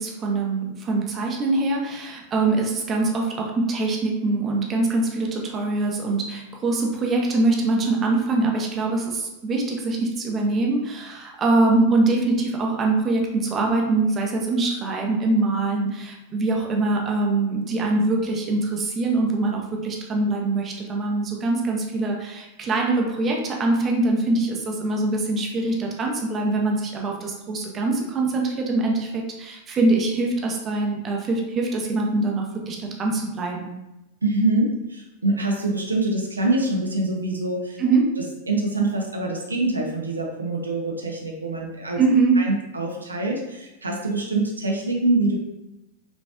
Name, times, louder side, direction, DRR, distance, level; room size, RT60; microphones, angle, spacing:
voice 1, 0.0-33.7 37.8-38.1 42.0-42.3, right 2 dB, 25° right, 0 dB, 0.7 m, -23 dB
voice 2, 34.2-37.8 38.5-42.0 42.4-45.4, right 2 dB, 80° right, 0 dB, 0.6 m, -24 dB
5.2 x 3.2 x 2.3 m, 0.96 s
figure-of-eight pair, 90°, 0 cm